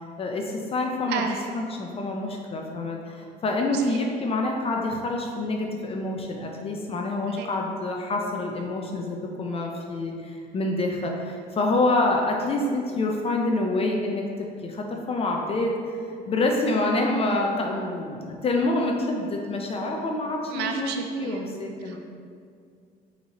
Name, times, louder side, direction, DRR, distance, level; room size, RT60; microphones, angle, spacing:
voice 1, 0.2-15.8 16.3-22.0, left 2 dB, 35° left, 1 dB, 0.4 m, -27 dB
voice 2, 1.1-1.6 3.7-3.8 7.4-7.5 20.5-21.5 21.9-22.0, right 6 dB, 80° right, 4 dB, 0.5 m, -32 dB
5.4 x 2.9 x 2.9 m, 2.3 s
cardioid pair, 110°, 17 cm